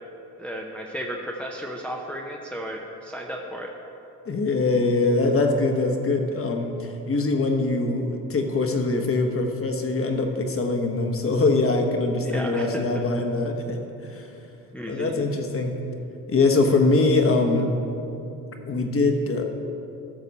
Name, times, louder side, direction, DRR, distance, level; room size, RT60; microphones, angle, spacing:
voice 1, 0.4-3.7 12.2-13.0 14.7-15.1, equal, 5° left, 0 dB, 0.8 m, -34 dB
voice 2, 4.3-13.8 14.1-14.3 14.9-15.7 16.3-17.7 18.7-19.4, left 3 dB, 35° left, 4 dB, 1.2 m, -23 dB
12.5 x 6.6 x 4.2 m, 2.9 s
cardioid pair, 85°, 37 cm